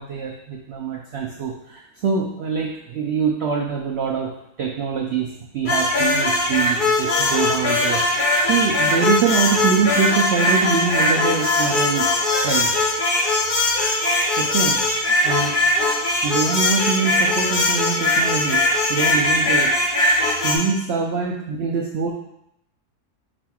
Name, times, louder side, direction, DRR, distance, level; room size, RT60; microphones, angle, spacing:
voice 1, 0.0-12.1 12.4-12.9 14.4-14.8 15.2-15.6 16.2-19.7 20.4-22.1, right 6 dB, 80° right, -1 dB, 0.6 m, -24 dB
sound 1, 5.7-20.6, left 2 dB, 45° left, 0.6 m, -20 dB
5.2 x 4.2 x 2.3 m, 0.77 s
omnidirectional pair, 1.7 m